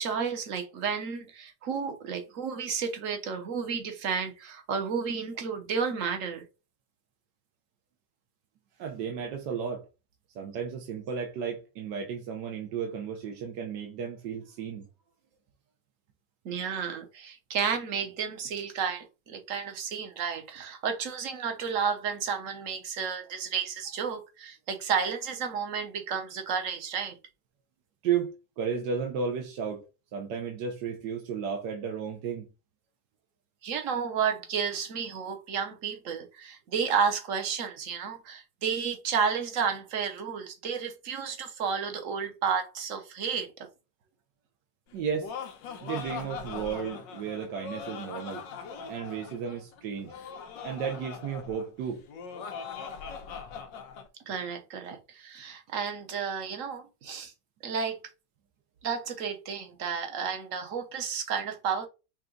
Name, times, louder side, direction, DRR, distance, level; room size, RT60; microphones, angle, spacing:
voice 1, 0.0-6.4 16.4-27.2 33.6-43.7 54.3-57.3 57.6-58.0 58.8-61.9, right 6 dB, 55° right, 1.1 m, -32 dB
voice 2, 8.8-9.9 10.3-14.9 28.0-29.8 30.1-32.4 44.9-45.3 45.8-48.4 48.9-50.1 50.6-52.0, right 7 dB, 75° right, 1.4 m, -33 dB
Laughter, 44.9-54.1, left 6 dB, 85° left, 1.5 m, -41 dB
5.7 x 2.4 x 3.8 m
omnidirectional pair, 1.9 m